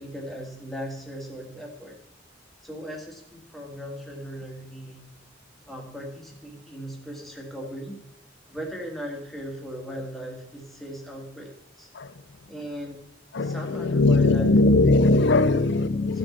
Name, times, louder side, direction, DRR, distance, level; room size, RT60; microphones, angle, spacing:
voice 1, 0.0-2.0 2.6-5.0 5.7-8.0 8.5-11.5 11.8-11.9 12.5-13.0 13.4-14.5 15.5-15.6 16.0-16.2, equal, ahead, 0 dB, 2.0 m, -37 dB
voice 2, 13.3-16.2, left 2 dB, 60° left, 14 dB, 0.6 m, -20 dB
14.5 x 6.3 x 4.5 m, 0.76 s
head